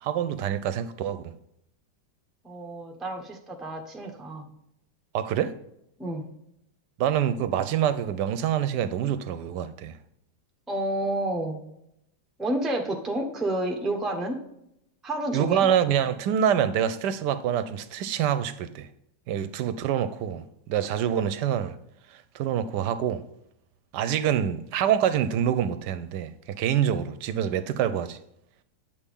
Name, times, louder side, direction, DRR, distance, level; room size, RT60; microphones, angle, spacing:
voice 1, 0.0-1.2 5.1-5.6 7.0-9.9 15.3-18.9 19.3-20.4 20.7-21.8 22.1-23.2 23.9-28.2, right 9 dB, 75° right, 1.1 m, -26 dB
voice 2, 2.4-4.5 6.0-6.3 10.7-11.6 12.4-14.4 15.0-15.7, right 1 dB, ahead, 0.7 m, -30 dB
9.8 x 7.0 x 3.6 m
omnidirectional pair, 1.9 m